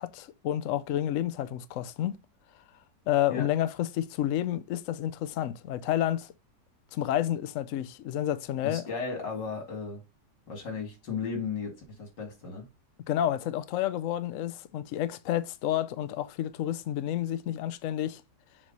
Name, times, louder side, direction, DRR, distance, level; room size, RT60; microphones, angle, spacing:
voice 1, 0.0-2.2 3.1-6.3 6.9-8.8 13.1-18.2, left 12 dB, 70° left, 0.8 m, -30 dB
voice 2, 8.6-10.0 10.5-12.6, left 5 dB, 90° left, 2.9 m, -35 dB
7.3 x 3.2 x 5.2 m
omnidirectional pair, 1.8 m